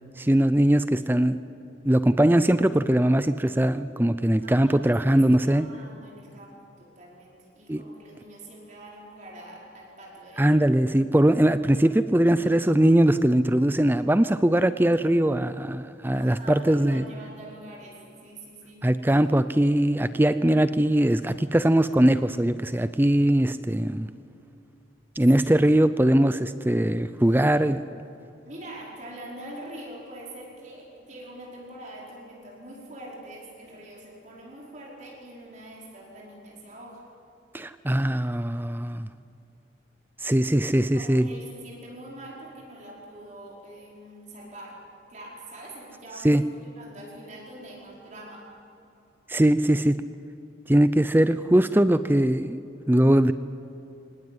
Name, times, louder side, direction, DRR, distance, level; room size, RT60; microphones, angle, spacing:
voice 1, 0.2-1.4 1.8-5.7 7.7-7.8 10.4-17.1 18.8-24.1 25.2-27.8 37.5-39.1 40.2-41.3 46.2-46.4 49.3-50.0 50.7-53.3, right 1 dB, 10° right, 12 dB, 0.5 m, -21 dB
voice 2, 4.4-10.5 16.1-19.1 25.4-25.5 28.4-37.0 40.9-44.8 45.1-48.5, right 1 dB, 40° right, -3 dB, 5.0 m, -44 dB
25.5 x 19.5 x 9.6 m, 2.8 s
head